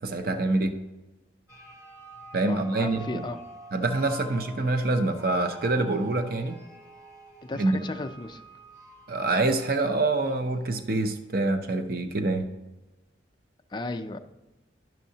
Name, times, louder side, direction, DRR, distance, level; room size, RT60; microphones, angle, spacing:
voice 1, 0.0-0.8 2.3-3.2 3.7-6.6 7.5-7.8 9.1-12.5, right 2 dB, 50° right, 7 dB, 0.6 m, -26 dB
sound 1, 1.5-11.2, right 1 dB, 15° right, 0.7 m, -47 dB
voice 2, 2.5-3.4 4.2-4.3 7.4-8.4 13.7-14.2, left 2 dB, 25° left, 7 dB, 0.4 m, -35 dB
10.5 x 6.2 x 2.8 m, 1.1 s
head